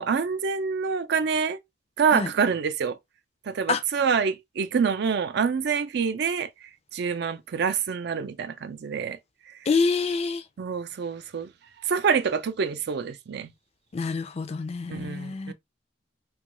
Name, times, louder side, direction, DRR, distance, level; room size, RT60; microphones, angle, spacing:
voice 1, 0.0-1.6 2.0-3.0 3.4-9.2 9.5-9.6 10.6-11.5 11.8-13.5 14.9-15.5, right 6 dB, 60° right, 0.4 m, -26 dB
voice 2, 9.7-10.4 13.9-15.5, left 4 dB, 35° left, 0.4 m, -26 dB
3.0 x 2.3 x 2.9 m
head